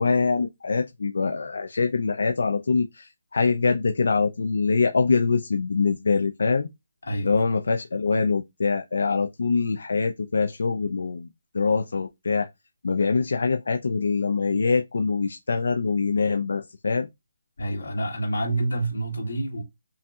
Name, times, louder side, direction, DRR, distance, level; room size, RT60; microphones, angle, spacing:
voice 1, 0.0-6.7 7.2-11.3 11.5-12.5 12.8-17.1, left 4 dB, 60° left, 0.5 m, -24 dB
voice 2, 7.0-7.4 17.6-19.6, right 1 dB, 75° left, 2.3 m, -28 dB
5.5 x 2.6 x 2.4 m
hypercardioid pair, 175°, 0 cm